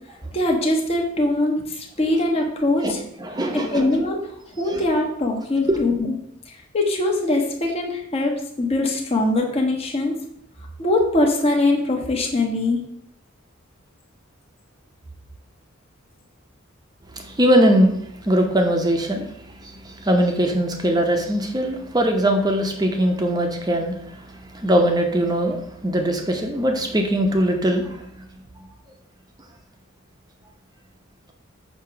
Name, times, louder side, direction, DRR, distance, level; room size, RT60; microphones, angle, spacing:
voice 1, 0.3-3.0 3.5-4.3 4.6-6.2 6.5-10.2 10.8-12.8, left 2 dB, 30° left, 0 dB, 1.2 m, -22 dB
voice 2, 3.2-3.9 4.7-4.8 5.7-5.8 17.1-18.0 18.2-19.3 19.6-24.3 24.5-28.2, right 1 dB, 20° right, 4 dB, 0.8 m, -21 dB
6.6 x 3.0 x 5.7 m, 0.72 s
head